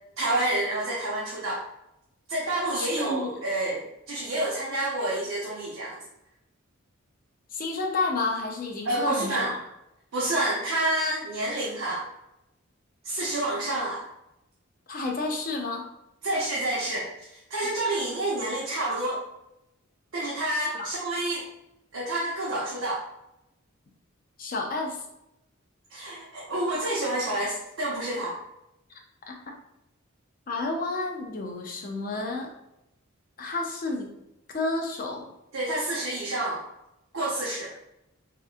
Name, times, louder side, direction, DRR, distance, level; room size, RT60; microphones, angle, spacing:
voice 1, 0.2-1.6 2.3-6.0 8.8-9.5 10.1-12.0 13.0-14.0 16.2-19.2 20.1-21.5 21.9-23.0 25.9-28.4 35.5-36.6 37.1-37.7, right 1 dB, 70° right, -5 dB, 0.7 m, -28 dB
voice 2, 2.7-3.4 7.5-9.5 14.9-15.8 20.7-20.9 24.4-25.0 28.9-29.0 29.3-29.4 30.5-32.5 33.4-34.1 34.5-35.3, left 3 dB, 40° left, 2 dB, 0.5 m, -30 dB
3.6 x 2.9 x 2.4 m, 0.87 s
head